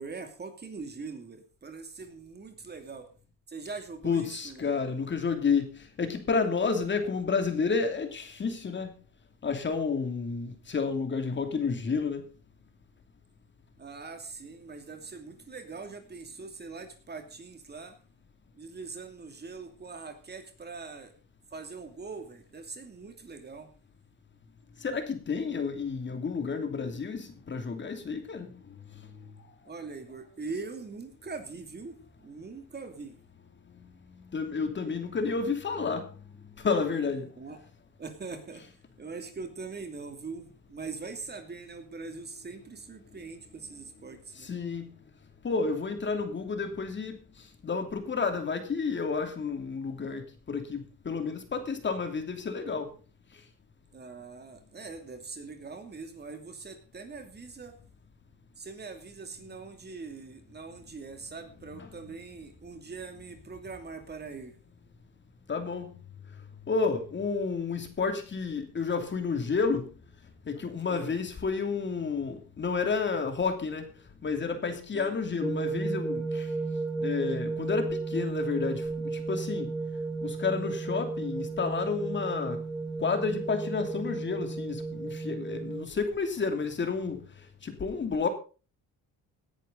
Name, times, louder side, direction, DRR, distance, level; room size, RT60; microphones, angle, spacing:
voice 1, 0.0-3.1 3.5-4.7 13.8-17.9 18.6-21.1 21.5-23.7 29.7-33.2 37.4-37.6 38.0-38.6 39.0-44.5 53.9-57.8 58.6-64.6 70.9-71.2 74.9-75.2, right 4 dB, 30° right, 2.7 m, -42 dB
voice 2, 4.0-8.9 9.4-12.2 24.8-28.8 33.7-33.9 34.3-36.1 36.6-37.3 44.4-44.9 45.4-47.2 47.6-52.9 61.8-61.9 65.5-65.9 66.7-69.9 70.5-73.9 74.2-76.5 77.0-79.7 80.2-82.6 83.0-87.2 87.6-88.3, left 5 dB, 35° left, 2.8 m, -30 dB
sound 1, 75.4-85.8, right 3 dB, 5° right, 1.7 m, -33 dB
18.0 x 10.5 x 4.0 m
cardioid pair, 115°, 33 cm